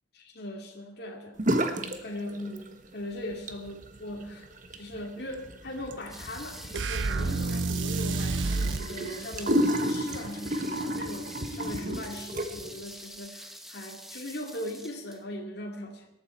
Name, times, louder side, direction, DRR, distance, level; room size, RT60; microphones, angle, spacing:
voice 1, 0.1-1.4 1.8-4.5 4.7-16.1, left 1 dB, 55° left, 1 dB, 2.5 m, -39 dB
sound 1, 1.4-2.0 2.3-2.9 3.3-12.8, equal, 40° right, 1.3 m, -32 dB
sound 2, 6.1-15.2, equal, ahead, 1.0 m, -46 dB
sound 3, 6.7-8.9, right 3 dB, 70° right, 0.6 m, -29 dB
20.0 x 13.0 x 4.5 m, 0.80 s
head